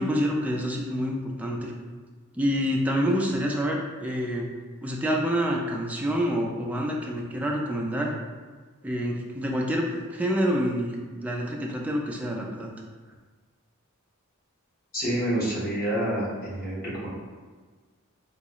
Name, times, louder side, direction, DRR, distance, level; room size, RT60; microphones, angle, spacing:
voice 1, 0.0-1.7 2.3-4.5 4.8-8.2 8.8-12.7, equal, 5° right, -2 dB, 0.3 m, -27 dB
voice 2, 14.9-17.1, right 1 dB, 45° left, -7 dB, 1.1 m, -28 dB
3.7 x 2.3 x 3.0 m, 1.4 s
head